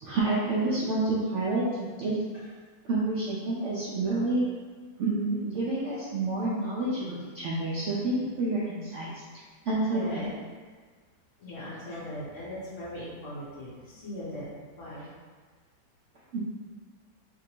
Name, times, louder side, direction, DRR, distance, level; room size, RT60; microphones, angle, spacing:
voice 1, 0.0-2.2 2.8-4.4 5.0-9.1 9.6-10.2 16.3-16.4, right 2 dB, 70° right, -7 dB, 0.7 m, -28 dB
voice 2, 9.9-10.3 11.4-15.1, left 1 dB, 55° left, -8 dB, 1.0 m, -39 dB
3.7 x 3.2 x 2.8 m, 1.5 s
omnidirectional pair, 1.9 m